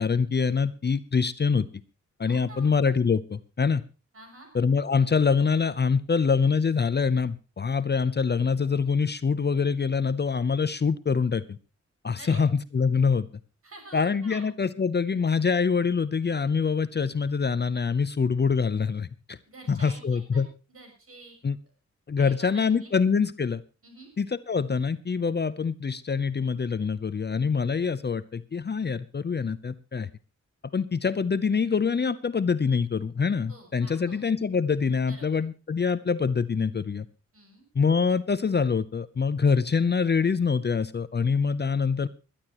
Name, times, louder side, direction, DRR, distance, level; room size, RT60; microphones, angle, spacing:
voice 1, 0.0-1.7 2.2-3.8 4.5-11.6 12.0-13.3 13.9-19.4 19.7-20.5 21.4-21.6 22.1-23.6 24.2-30.1 30.7-37.0 37.7-42.1, left 5 dB, 35° left, 14 dB, 0.7 m, -25 dB
voice 2, 2.3-2.7 4.1-4.5 12.2-12.5 13.6-14.5 19.5-21.3 22.2-22.9 23.8-24.1 33.5-34.5 35.1-35.4 37.3-37.6, right 2 dB, 50° right, 4 dB, 6.7 m, -48 dB
21.5 x 12.0 x 3.0 m, 0.32 s
wide cardioid pair, 125°, 30 cm